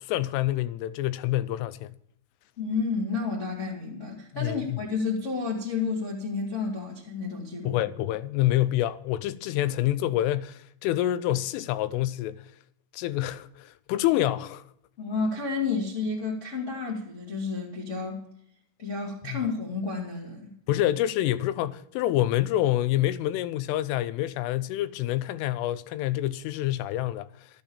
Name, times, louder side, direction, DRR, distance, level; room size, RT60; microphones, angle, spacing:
voice 1, 0.1-2.0 4.3-4.8 7.6-12.4 12.9-14.6 19.2-19.4 20.7-27.3, left 14 dB, 90° left, 3.2 m, -27 dB
voice 2, 2.6-7.8 15.0-18.2 18.8-20.5, left 4 dB, 55° left, 0.8 m, -31 dB
13.5 x 8.8 x 7.0 m
omnidirectional pair, 5.6 m